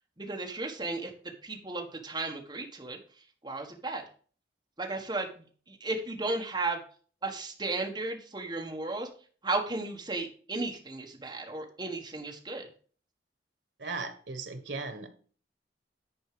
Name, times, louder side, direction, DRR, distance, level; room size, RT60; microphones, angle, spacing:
voice 1, 0.2-1.1 1.4-3.0 3.4-4.0 4.8-6.8 7.2-9.1 9.4-12.7, right 3 dB, 25° right, 1.5 m, -34 dB
voice 2, 13.8-15.1, right 3 dB, 80° right, 1.4 m, -37 dB
10.0 x 4.6 x 4.9 m
head